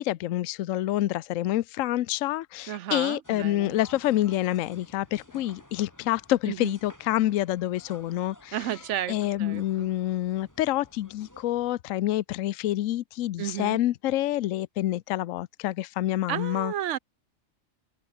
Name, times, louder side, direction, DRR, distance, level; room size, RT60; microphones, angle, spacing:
voice 1, 0.0-8.6 9.1-16.7, left 14 dB, 75° left, 1.0 m, -27 dB
voice 2, 2.7-3.8 6.5-6.7 8.5-9.9 13.4-13.8 16.3-17.0, right 12 dB, 65° right, 0.9 m, -33 dB
sound 1, 3.2-11.8, left 1 dB, 10° left, 5.0 m, -53 dB
open air
omnidirectional pair, 1.4 m